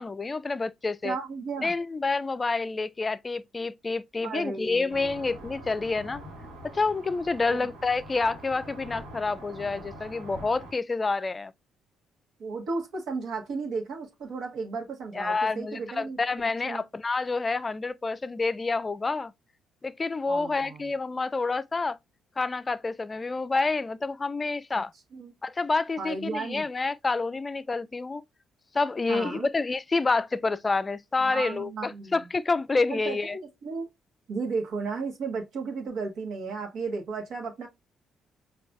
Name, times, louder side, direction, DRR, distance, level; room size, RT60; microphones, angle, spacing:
voice 1, 0.0-1.2 1.6-6.2 6.6-11.5 15.1-19.3 19.8-22.0 22.4-24.9 25.4-28.2 28.7-33.4, left 3 dB, 30° left, 0.4 m, -28 dB
voice 2, 1.0-1.7 4.2-5.4 7.5-7.7 12.4-16.2 16.6-16.8 20.3-20.8 24.7-24.8 25.1-25.3 26.0-26.7 29.1-29.5 31.2-32.2 32.9-33.9 34.3-37.7, right 4 dB, 65° right, 1.0 m, -34 dB
sound 1, 4.9-10.7, right 1 dB, 80° right, 1.3 m, -44 dB
4.9 x 2.3 x 2.3 m
hypercardioid pair, 45°, 0 cm